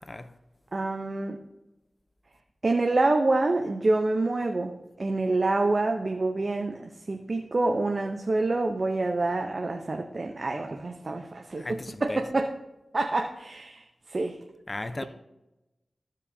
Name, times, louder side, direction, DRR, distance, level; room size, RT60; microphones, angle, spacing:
voice 1, 0.0-0.4 11.5-12.3 14.7-15.0, left 2 dB, 35° left, 0.7 m, -36 dB
voice 2, 0.7-1.4 2.6-12.5 12.9-14.4, right 2 dB, 55° right, 0.8 m, -27 dB
14.0 x 5.2 x 2.8 m
cardioid pair, 40°, 0 cm